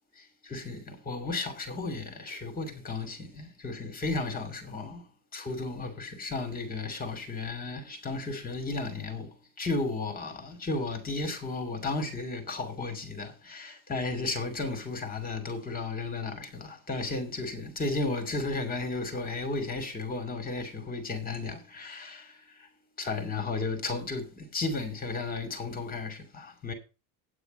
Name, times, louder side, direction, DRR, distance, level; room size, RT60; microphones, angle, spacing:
voice 1, 0.4-5.1 5.3-22.7 23.0-26.7, left 3 dB, 20° left, 2.5 m, -34 dB
9.0 x 8.3 x 5.2 m
cardioid pair, 155°, 39 cm